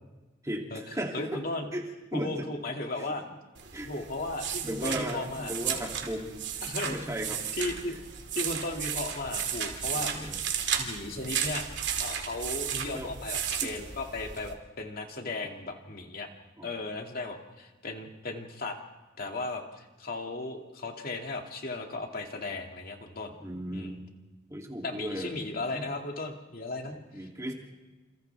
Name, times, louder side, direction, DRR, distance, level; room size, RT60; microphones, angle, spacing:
voice 1, 0.4-1.4 1.7-2.5 3.0-3.1 3.7-3.9 4.6-7.6 7.9-8.0 9.9-10.4 12.9-13.1 13.6-13.7 16.6-16.7 23.4-24.0 24.5-25.9 26.8-27.5, equal, 15° right, 0 dB, 2.8 m, -36 dB
voice 2, 1.1-1.7 2.1-3.2 3.8-5.5 6.6-7.0 7.5-8.0 8.4-10.4 10.8-11.7 12.0-16.3 16.6-18.8 19.2-23.3 23.7-24.0 24.8-27.3, left 2 dB, 50° left, 3 dB, 2.4 m, -36 dB
sound 1, 3.5-14.5, right 8 dB, 65° right, 2.6 m, -34 dB
28.0 x 28.0 x 3.5 m, 1.2 s
head